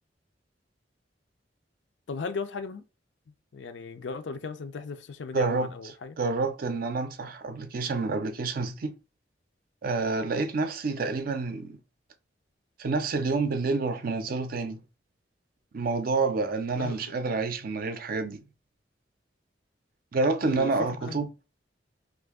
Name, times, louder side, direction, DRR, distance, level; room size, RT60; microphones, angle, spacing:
voice 1, 2.1-2.8 3.5-6.2 16.8-17.2 20.4-20.7 21.0-21.2, left 4 dB, 75° left, 0.5 m, -36 dB
voice 2, 5.3-5.7 6.2-8.9 9.8-11.8 12.8-14.8 15.7-18.4 20.1-21.3, right 3 dB, 55° right, 0.5 m, -28 dB
2.6 x 2.5 x 3.5 m
head